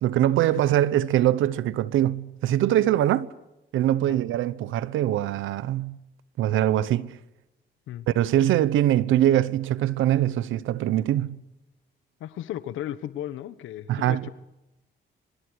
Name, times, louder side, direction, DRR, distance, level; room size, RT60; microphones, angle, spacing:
voice 1, 0.0-3.3 3.7-6.0 6.4-7.2 8.1-11.4 13.9-14.3, right 12 dB, 85° right, 1.0 m, -23 dB
voice 2, 12.2-14.3, left 11 dB, 85° left, 1.3 m, -35 dB
26.0 x 26.0 x 6.4 m
cardioid pair, 90°, 20 cm